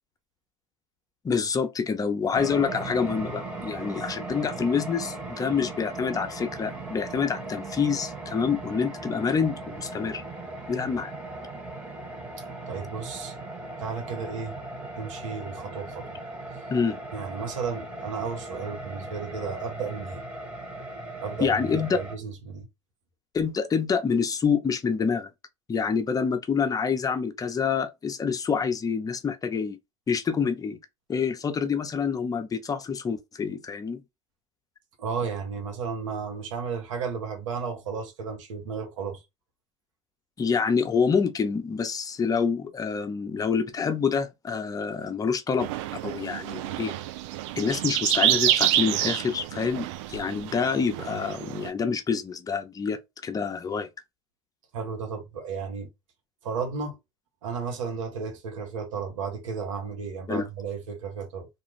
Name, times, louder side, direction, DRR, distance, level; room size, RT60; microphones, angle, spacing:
voice 1, 1.2-10.2 10.7-11.1 16.7-17.0 21.4-22.0 23.3-25.3 25.7-29.8 30.1-30.8 31.1-34.0 40.4-45.7 46.0-46.9 47.6-53.9 60.3-60.5, left 6 dB, 25° left, 0.6 m, -27 dB
sound 1, 2.3-22.2, right 2 dB, 10° right, 1.1 m, -38 dB
voice 2, 12.7-13.3 13.8-14.6 15.0-16.2 17.1-20.2 21.2-22.7 35.0-39.2 54.7-55.9 56.4-57.0 57.4-61.5, right 5 dB, 85° right, 1.0 m, -33 dB
sound 2, 45.6-51.7, right 13 dB, 70° right, 0.4 m, -28 dB
2.5 x 2.2 x 3.1 m
hypercardioid pair, 85°, 16 cm